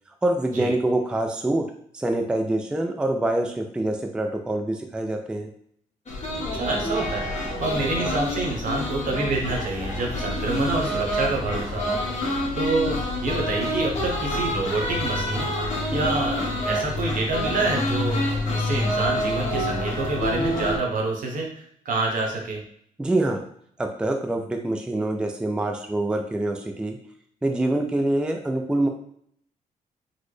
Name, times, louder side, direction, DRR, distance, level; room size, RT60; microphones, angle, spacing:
voice 1, 0.2-5.5 23.0-23.4 23.8-27.0 27.4-28.9, right 1 dB, 5° right, 4 dB, 0.3 m, -25 dB
sound 1, 6.1-20.8, left 1 dB, 50° left, 1.1 m, -27 dB
voice 2, 6.5-7.3 7.6-12.0 12.2-15.5 15.9-18.2 18.5-22.6, right 3 dB, 65° right, 0 dB, 1.0 m, -27 dB
4.0 x 2.0 x 3.2 m, 0.65 s
cardioid pair, 95°, 15 cm